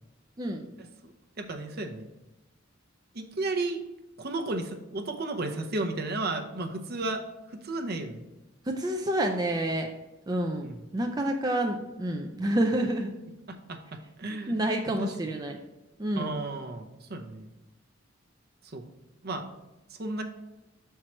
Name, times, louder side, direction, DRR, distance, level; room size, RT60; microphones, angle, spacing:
voice 1, 1.4-2.1 3.1-3.8 4.2-7.2 7.5-8.2 10.6-10.8 13.5-14.6 15.0-15.1 16.2-17.5 18.7-18.9 19.2-19.5 19.9-20.2, right 2 dB, 55° right, 5 dB, 0.7 m, -33 dB
voice 2, 8.7-9.9 10.3-10.7 10.9-13.1 14.5-15.6 16.0-16.3, right 1 dB, 20° right, 3 dB, 0.4 m, -28 dB
6.2 x 4.6 x 4.3 m, 1.0 s
head